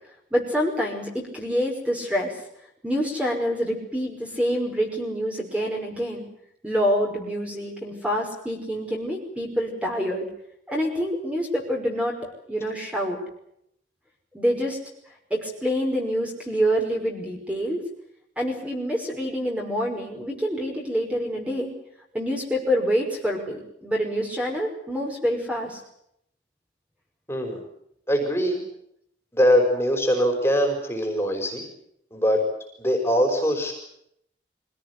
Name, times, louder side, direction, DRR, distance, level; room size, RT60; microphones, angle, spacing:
voice 1, 0.3-2.3 2.8-6.2 6.6-10.3 10.7-12.2 12.5-13.2 14.3-14.8 15.3-17.8 18.4-21.7 22.1-25.8, equal, 5° right, 0 dB, 5.4 m, -26 dB
voice 2, 27.3-27.6 28.1-28.6 29.3-31.6 32.1-32.4 32.8-33.7, equal, 15° left, 3 dB, 5.4 m, -22 dB
25.0 x 18.0 x 9.8 m, 0.74 s
head